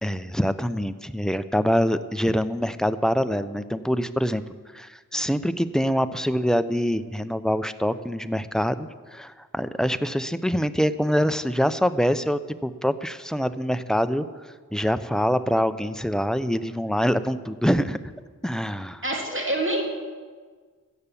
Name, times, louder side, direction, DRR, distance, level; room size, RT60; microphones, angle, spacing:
voice 1, 0.0-4.4 4.7-14.3 14.7-18.0 18.4-19.0, equal, ahead, 12 dB, 0.5 m, -25 dB
voice 2, 19.0-19.8, right 1 dB, 35° right, 1 dB, 2.3 m, -26 dB
12.5 x 6.9 x 8.5 m, 1.5 s
wide cardioid pair, 55°, 33 cm